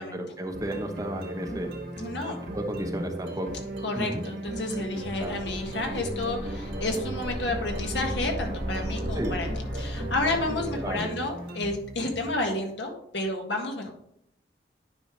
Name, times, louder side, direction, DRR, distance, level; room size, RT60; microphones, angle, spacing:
voice 1, 0.0-1.7 2.5-3.5 3.9-4.2 5.2-5.4 9.1-9.4 10.8-11.1, right 1 dB, 20° right, 4 dB, 0.8 m, -33 dB
sound 1, 0.5-12.5, right 1 dB, 80° right, 2.2 m, -37 dB
voice 2, 2.0-2.4 3.8-9.5 9.7-13.9, left 2 dB, 75° left, 2 dB, 1.6 m, -31 dB
sound 2, 4.9-11.3, equal, 15° left, 3.0 m, -36 dB
9.7 x 5.4 x 3.2 m, 0.73 s
head